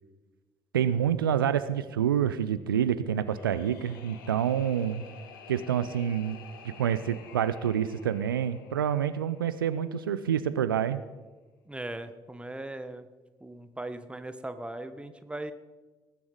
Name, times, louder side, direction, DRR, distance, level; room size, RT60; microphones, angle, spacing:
voice 1, 0.7-5.0 5.5-6.4 6.6-11.0, right 9 dB, 80° right, 13 dB, 0.4 m, -27 dB
sound 1, 3.1-10.2, left 6 dB, 75° left, 1.0 m, -51 dB
voice 2, 11.7-13.1 13.4-15.5, right 1 dB, 10° right, 10 dB, 1.0 m, -39 dB
20.0 x 7.0 x 4.9 m, 1.3 s
figure-of-eight pair, 45°, 11 cm